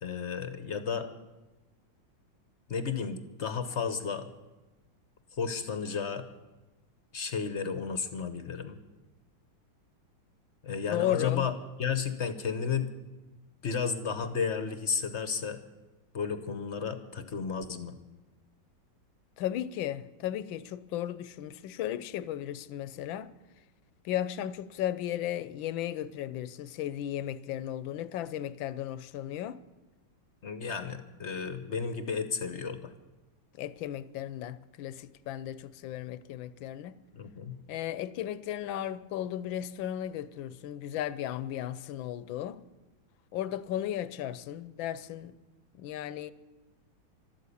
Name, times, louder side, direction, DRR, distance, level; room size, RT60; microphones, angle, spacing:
voice 1, 0.0-1.1 2.7-4.3 5.3-6.2 7.1-8.8 10.6-11.5 11.8-12.9 13.6-15.6 16.1-17.9 30.4-32.9 37.1-37.6, left 6 dB, 45° left, 0.9 m, -33 dB
voice 2, 10.9-11.5 19.4-23.3 24.0-29.6 33.5-37.0 37.7-42.6 43.3-45.4 45.7-46.3, left 11 dB, 75° left, 1.4 m, -35 dB
13.0 x 12.5 x 8.4 m
omnidirectional pair, 2.2 m